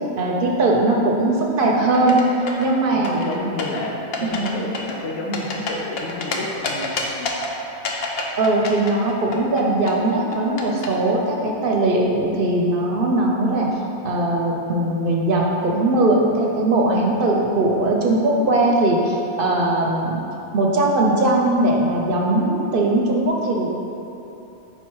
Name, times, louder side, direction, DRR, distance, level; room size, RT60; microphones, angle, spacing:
voice 1, 0.2-2.2 2.6-3.2 4.2-4.5 8.4-13.7 14.0-20.2 20.5-23.7, right 2 dB, 55° right, -1 dB, 0.8 m, -20 dB
sound 1, 1.9-2.7 3.0-3.8 4.1-4.5 4.7-6.3 6.6-7.5 7.8-9.6 9.9-10.9, left 4 dB, 60° left, 0.8 m, -27 dB
voice 2, 2.9-7.3, left 2 dB, 85° left, 0 dB, 1.0 m, -30 dB
5.3 x 4.3 x 4.6 m, 2.9 s
omnidirectional pair, 1.3 m